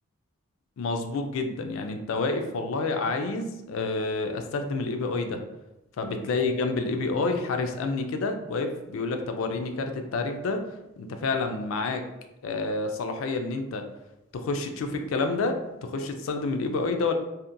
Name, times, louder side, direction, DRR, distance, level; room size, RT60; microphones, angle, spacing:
voice 1, 0.8-5.4 6.0-10.6 11.0-12.0 12.4-13.8 14.3-17.1, left 3 dB, 70° left, 5 dB, 0.3 m, -29 dB
2.7 x 2.1 x 2.5 m, 0.96 s
head